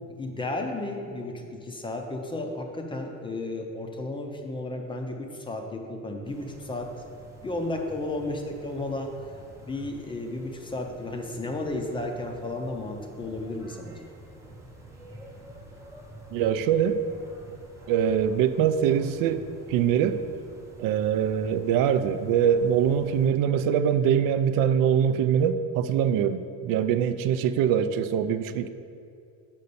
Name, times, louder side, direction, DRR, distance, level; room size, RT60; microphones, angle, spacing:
voice 1, 0.2-6.9 7.4-9.1 9.6-14.1, left 2 dB, 15° left, 3 dB, 0.5 m, -33 dB
sound 1, 6.2-23.3, right 1 dB, 10° right, 0.8 m, -48 dB
voice 2, 16.3-17.0 17.9-20.2 20.8-28.7, right 8 dB, 75° right, 11 dB, 0.5 m, -23 dB
5.7 x 5.3 x 6.8 m, 2.4 s
cardioid pair, 165°, 34 cm